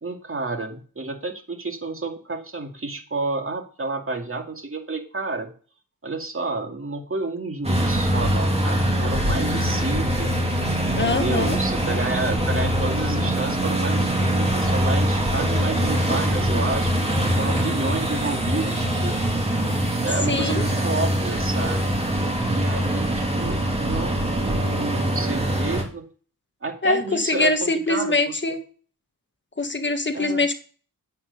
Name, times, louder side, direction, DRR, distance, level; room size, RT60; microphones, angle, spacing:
voice 1, 0.0-5.5 6.0-10.3 10.8-17.0 17.4-19.2 20.0-21.9 22.4-24.2 24.4-26.1 26.6-28.3 30.1-30.4, right 3 dB, 40° right, 3 dB, 2.2 m, -30 dB
sound 1, 7.6-25.8, right 1 dB, 15° right, 2.8 m, -23 dB
voice 2, 10.9-11.6 20.3-20.6 26.8-28.6 29.6-30.5, left 2 dB, 30° left, 7 dB, 1.6 m, -23 dB
8.9 x 7.8 x 4.0 m, 0.39 s
wide cardioid pair, 80°, 35 cm